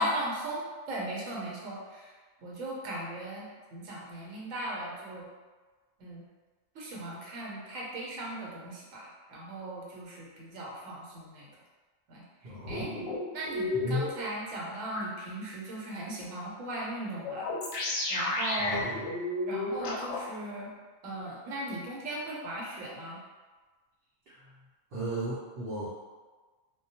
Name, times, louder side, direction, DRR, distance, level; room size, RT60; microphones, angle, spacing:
voice 1, 0.0-2.1 2.4-3.5 3.7-5.3 6.0-6.2 6.7-11.5 12.1-12.2 12.7-12.9 13.3-17.5 18.1-18.8 19.5-20.7 21.0-23.2, right 1 dB, 80° right, -4 dB, 1.1 m, -37 dB
voice 2, 12.4-13.1 13.7-14.1 18.6-19.1 24.3-24.5 24.9-25.9, equal, 55° right, -9 dB, 0.7 m, -35 dB
sound 1, 12.7-14.1 14.9-15.0 17.2-20.2, left 2 dB, 90° left, 1.0 m, -32 dB
2.2 x 2.2 x 2.7 m, 1.3 s
omnidirectional pair, 1.3 m